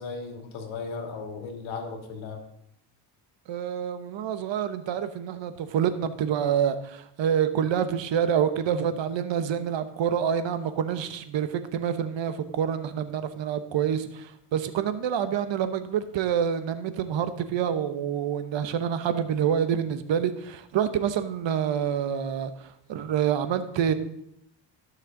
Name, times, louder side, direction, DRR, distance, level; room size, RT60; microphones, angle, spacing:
voice 1, 0.0-2.4, left 4 dB, 85° left, 3 dB, 2.3 m, -36 dB
voice 2, 3.5-23.9, right 8 dB, 70° right, 11 dB, 1.1 m, -27 dB
16.5 x 6.5 x 3.9 m, 0.77 s
cardioid pair, 80°, 47 cm